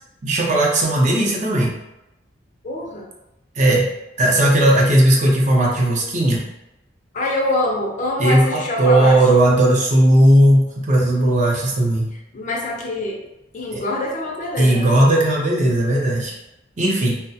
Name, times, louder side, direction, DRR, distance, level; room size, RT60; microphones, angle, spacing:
voice 1, 0.2-1.7 3.6-3.9 4.2-6.4 8.2-12.1 13.7-13.8 14.6-16.3 16.8-17.2, right 1 dB, 40° right, -2 dB, 0.5 m, -16 dB
voice 2, 2.6-3.1 7.1-9.3 12.3-13.2 13.5-15.0, left 1 dB, 45° left, -1 dB, 0.4 m, -24 dB
2.2 x 2.0 x 2.7 m, 0.92 s
head